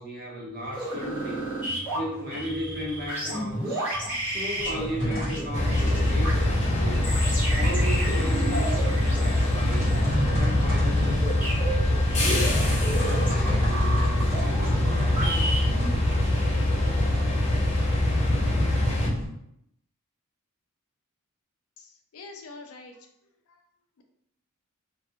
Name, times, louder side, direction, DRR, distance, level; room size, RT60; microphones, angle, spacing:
voice 1, 0.0-1.5 1.9-3.9 4.2-7.2 7.5-9.9 10.3-12.5 13.0-15.5, equal, 45° right, -3 dB, 0.7 m, -36 dB
sound 1, 0.6-15.9, right 1 dB, 10° right, 1.1 m, -32 dB
sound 2, 4.6-19.3, equal, 30° right, 1.1 m, -33 dB
sound 3, 5.5-19.1, left 1 dB, 30° left, 0.6 m, -24 dB
voice 2, 21.8-23.1 23.5-23.6, left 3 dB, 85° left, 4 dB, 0.4 m, -45 dB
2.4 x 2.2 x 2.7 m, 0.76 s
head